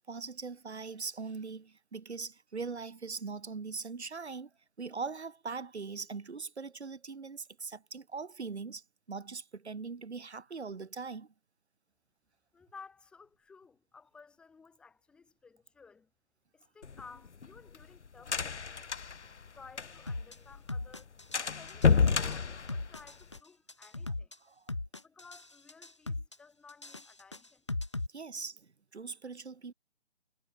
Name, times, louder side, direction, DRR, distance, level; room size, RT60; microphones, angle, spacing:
voice 1, 0.1-4.5 4.8-11.3 24.4-24.6 28.1-29.7, right 4 dB, 65° right, 3.4 m, -41 dB
voice 2, 12.5-16.1 16.5-18.7 19.6-24.3 25.0-27.6, left 5 dB, 5° left, 4.3 m, -56 dB
sound 1, 16.8-20.2 20.5-20.6 20.9-21.0 21.3-23.4, left 5 dB, 70° left, 1.6 m, -29 dB
sound 2, 20.1-20.3 20.7-21.4 21.7-22.3 22.7-23.4 23.7-24.3 24.7-25.4 25.7-26.4 26.7-28.1, left 2 dB, 25° left, 0.7 m, -37 dB
hypercardioid pair, 175°, 35 cm